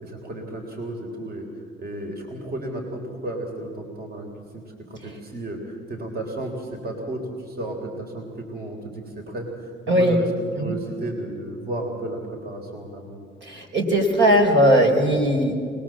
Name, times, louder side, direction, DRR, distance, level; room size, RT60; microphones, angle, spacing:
voice 1, 0.0-1.5 1.8-4.3 4.5-10.3 10.6-13.3, right 1 dB, 50° right, 2 dB, 3.6 m, -33 dB
voice 2, 9.9-10.2 10.6-10.7 13.4-15.5, equal, 65° right, 3 dB, 4.2 m, -19 dB
24.5 x 20.0 x 7.5 m, 2.2 s
cardioid pair, 90°, 20 cm